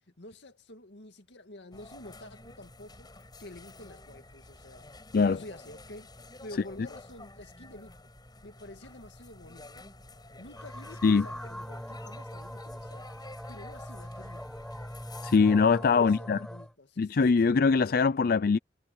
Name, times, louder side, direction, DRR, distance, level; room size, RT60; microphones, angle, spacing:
voice 1, 0.2-3.1 3.4-4.9 5.2-6.1 6.4-8.0 8.4-9.9 10.4-13.1 13.5-14.5 15.9-17.2, left 1 dB, 85° left, 2.1 m, -48 dB
sound 1, 1.7-15.4, left 2 dB, 25° left, 7.2 m, -50 dB
sound 2, 10.6-16.7, equal, 5° left, 1.4 m, -41 dB
voice 2, 15.2-16.5 17.0-18.6, left 5 dB, 55° left, 0.4 m, -22 dB
head